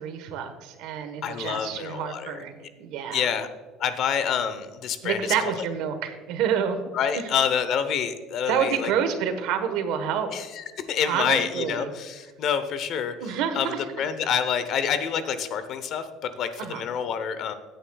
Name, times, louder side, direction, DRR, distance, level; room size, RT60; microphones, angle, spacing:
voice 1, 0.0-3.3 5.0-6.8 8.5-10.3 11.0-11.9 13.2-13.8 16.6-16.8, right 8 dB, 70° right, 8 dB, 1.2 m, -28 dB
voice 2, 1.2-2.4 3.1-3.5 3.8-5.2 6.9-8.9 10.3-13.1 13.5-17.5, left 7 dB, 50° left, 11 dB, 0.8 m, -27 dB
16.5 x 9.0 x 2.3 m, 1.4 s
cardioid pair, 155°, 0 cm